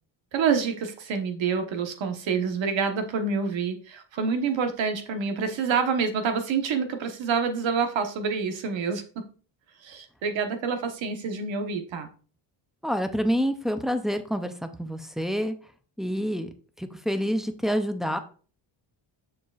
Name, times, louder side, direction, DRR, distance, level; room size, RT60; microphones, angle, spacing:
voice 1, 0.3-9.2 9.8-12.1, right 5 dB, 65° right, 6 dB, 1.2 m, -27 dB
voice 2, 12.8-15.6 16.0-16.5 16.8-18.2, equal, ahead, 7 dB, 0.4 m, -27 dB
6.7 x 6.6 x 2.4 m, 0.39 s
cardioid pair, 135°, 48 cm